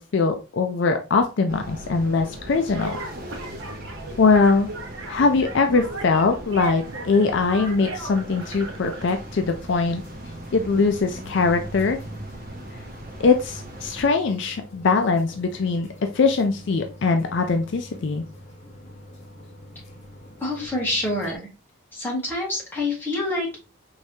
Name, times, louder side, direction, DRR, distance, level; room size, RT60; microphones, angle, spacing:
voice 1, 0.0-3.0 4.2-4.7 5.1-10.0 10.5-12.0 13.2-15.9 16.1-18.2, left 4 dB, 55° left, 6 dB, 0.4 m, -21 dB
sound 1, 1.5-14.1, right 1 dB, 45° right, 0.9 m, -39 dB
sound 2, 2.7-9.0, right 2 dB, 70° right, 0.9 m, -36 dB
sound 3, 6.9-21.3, equal, 30° left, 0.9 m, -45 dB
voice 2, 20.4-21.4 21.9-23.6, left 2 dB, 10° left, -4 dB, 1.6 m, -26 dB
4.6 x 3.2 x 2.7 m, 0.31 s
head